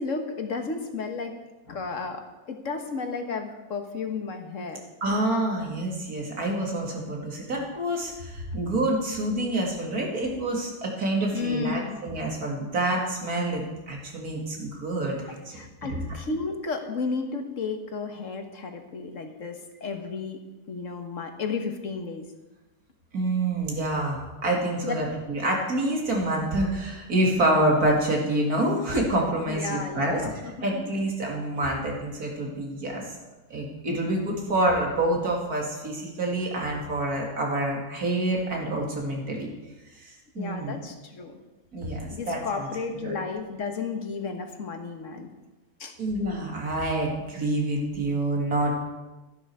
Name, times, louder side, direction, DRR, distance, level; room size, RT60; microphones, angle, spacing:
voice 1, 0.0-1.3 1.7-4.8 11.3-12.0 15.5-20.4 20.7-22.3 24.8-25.0 29.5-30.9 31.6-31.7 40.4-41.4 42.1-45.3 45.8-45.9, left 4 dB, 60° left, 6 dB, 1.6 m, -33 dB
voice 2, 5.0-16.0 23.1-30.3 30.6-33.0 33.5-39.5 40.0-40.7 41.7-42.7 43.0-43.2 46.0-48.7, right 1 dB, 85° right, -1 dB, 3.0 m, -27 dB
13.0 x 11.0 x 4.8 m, 1.1 s
omnidirectional pair, 1.5 m